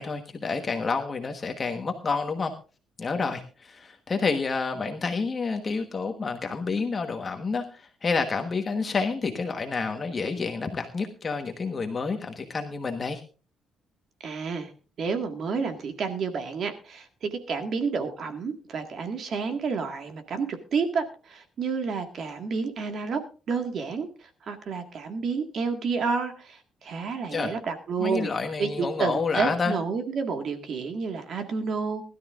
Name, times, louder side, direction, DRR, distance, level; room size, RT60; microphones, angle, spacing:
voice 1, 0.0-2.5 3.0-13.2 27.3-27.5 28.0-29.7, left 4 dB, 30° left, 5 dB, 1.3 m, -29 dB
voice 2, 14.2-14.7 15.0-23.2 23.5-28.3 28.6-32.0, right 5 dB, 50° right, 6 dB, 1.8 m, -30 dB
20.5 x 12.5 x 2.5 m, 0.35 s
cardioid pair, 145°, 0 cm